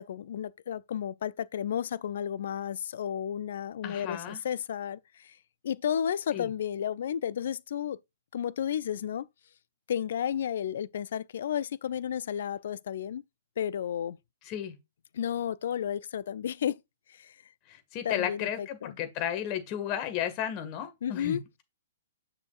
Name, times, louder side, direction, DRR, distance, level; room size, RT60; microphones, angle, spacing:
voice 1, 0.0-5.4 5.6-8.0 8.3-9.3 9.9-13.2 13.6-14.2 15.1-16.8 17.2-17.3 18.0-18.5 18.8-18.9 21.0-21.4, left 9 dB, 55° left, 0.5 m, -32 dB
voice 2, 3.8-4.4 6.3-6.5 14.4-14.8 17.7-21.6, left 10 dB, 30° left, 1.9 m, -34 dB
8.6 x 7.1 x 2.5 m
figure-of-eight pair, 120°, 0 cm